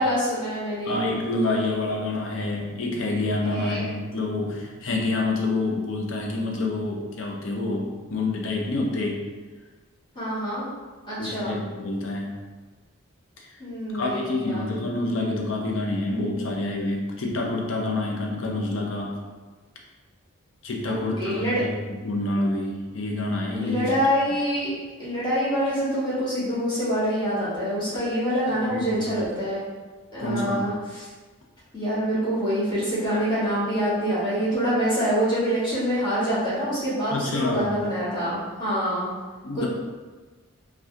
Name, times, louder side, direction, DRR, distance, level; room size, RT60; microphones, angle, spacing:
voice 1, 0.0-1.0 3.5-3.8 10.1-10.6 11.1-11.6 13.6-14.7 20.9-21.6 23.6-24.7 25.0-29.6 30.1-31.1 31.7-39.1 39.5-39.7, equal, 20° left, -11 dB, 1.4 m, -26 dB
voice 2, 0.8-9.2 11.2-12.4 13.4-13.5 13.9-19.2 20.6-21.8 22.0-23.9 28.7-29.2 30.2-30.7 37.1-37.7 39.4-39.7, left 2 dB, 70° left, 0 dB, 0.6 m, -27 dB
3.5 x 2.3 x 2.7 m, 1.3 s
head